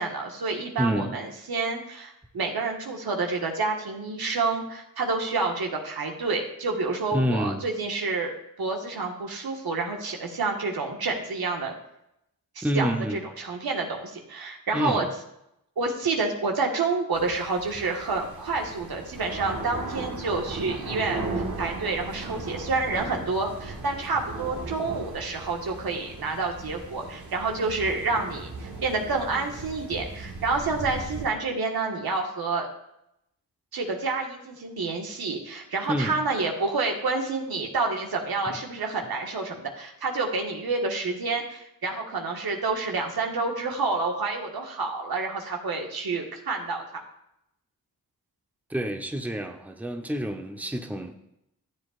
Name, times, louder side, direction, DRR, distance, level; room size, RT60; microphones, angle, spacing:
voice 1, 0.0-11.7 12.5-15.1 15.8-32.7 33.7-47.0, right 3 dB, 80° right, 1 dB, 1.6 m, -29 dB
voice 2, 0.8-1.2 7.1-7.6 12.6-13.2 14.7-15.1 35.9-36.2 38.5-38.6 48.7-51.1, equal, 5° right, 5 dB, 0.9 m, -28 dB
sound 1, 17.1-31.3, right 3 dB, 55° right, 1.9 m, -37 dB
13.5 x 7.6 x 2.5 m, 0.81 s
cardioid pair, 55°, 37 cm